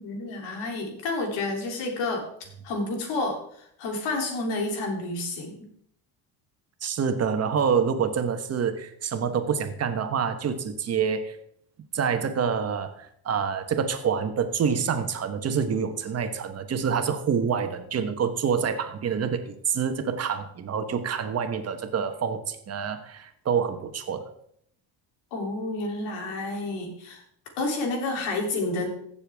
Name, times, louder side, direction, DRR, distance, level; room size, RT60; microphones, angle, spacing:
voice 1, 0.0-2.3 2.6-5.6 25.3-27.2 27.6-28.9, left 2 dB, 85° left, 2 dB, 3.2 m, -30 dB
voice 2, 6.8-11.4 11.9-24.3, right 6 dB, 35° right, 8 dB, 1.2 m, -27 dB
15.5 x 7.0 x 3.5 m, 0.68 s
cardioid pair, 125°, 43 cm